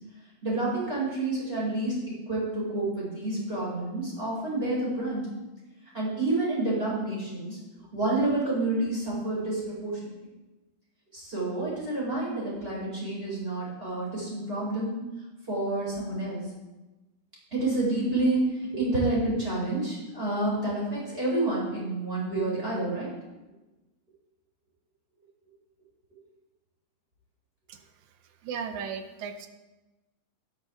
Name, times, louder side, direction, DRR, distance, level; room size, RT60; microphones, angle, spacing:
voice 1, 0.4-2.0 2.3-5.2 5.9-7.6 7.9-10.0 11.1-15.0 15.5-16.4 17.5-18.4 18.7-23.1, right 2 dB, 20° right, -6 dB, 4.7 m, -29 dB
voice 2, 28.4-29.5, right 6 dB, 80° right, 8 dB, 2.1 m, -35 dB
12.5 x 9.9 x 3.7 m, 1.1 s
omnidirectional pair, 3.5 m